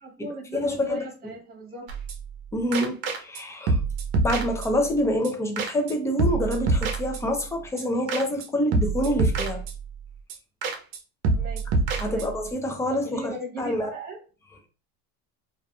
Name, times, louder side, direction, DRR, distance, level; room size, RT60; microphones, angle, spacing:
voice 1, 0.0-1.9 11.2-11.6 12.0-12.3 13.0-14.2, right 2 dB, 30° right, 1.1 m, -37 dB
voice 2, 0.5-1.3 2.5-3.8 4.2-9.6 12.0-13.9, left 1 dB, 10° left, 0.5 m, -27 dB
sound 1, 1.9-2.4 2.7-3.4 3.7-5.0 5.2-5.3 5.6-5.9 6.2-7.5 7.8-7.9 8.1-8.5 8.7-10.0 10.3-10.4 10.6-11.0 11.2-12.5, right 3 dB, 75° right, 0.7 m, -26 dB
2.5 x 2.5 x 2.3 m
supercardioid pair, 120°, 32 cm